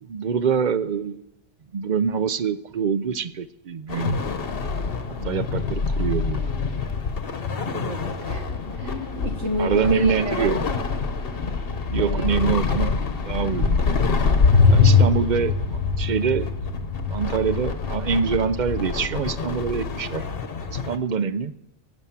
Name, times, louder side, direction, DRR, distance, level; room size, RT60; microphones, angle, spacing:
voice 1, 0.0-1.2 1.7-4.2 5.2-6.5 9.6-10.7 11.9-13.0 13.2-13.8 14.7-16.5 17.1-20.2 20.7-21.5, right 6 dB, 50° right, 14 dB, 0.6 m, -25 dB
sound 1, 3.9-21.0, left 5 dB, 50° left, 1.2 m, -24 dB
voice 2, 7.5-8.0 8.3-8.5 8.7-10.5 12.0-12.3 14.5-14.9, equal, 80° right, 4 dB, 2.1 m, -31 dB
16.5 x 8.1 x 7.3 m, 0.87 s
omnidirectional pair, 1.3 m